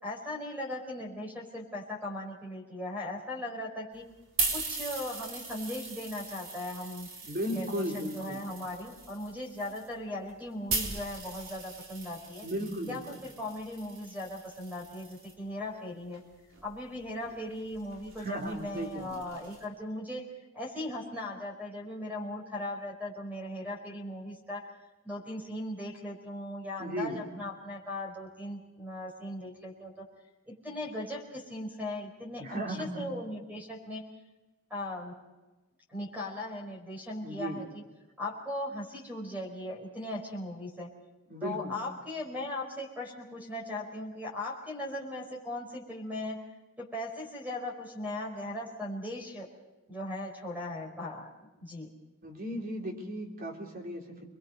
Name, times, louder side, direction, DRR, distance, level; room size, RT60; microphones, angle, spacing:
voice 1, 0.0-4.0 4.5-7.1 7.5-12.5 12.9-16.2 16.6-20.2 20.5-24.7 25.0-30.1 30.5-34.0 34.7-35.1 35.9-37.8 38.2-40.9 41.4-46.4 46.8-49.5 49.9-51.3 51.6-51.9, left 1 dB, 10° right, 1 dB, 4.8 m, -38 dB
sound 1, 3.9-15.3 16.1-19.6, right 4 dB, 70° right, 4.0 m, -40 dB
voice 2, 7.2-8.4 12.4-13.0 18.2-19.2 26.8-27.2 32.4-33.0 37.2-37.6 41.3-41.7 52.2-54.2, equal, 45° right, 1 dB, 3.9 m, -35 dB
28.5 x 22.0 x 5.4 m, 1.1 s
head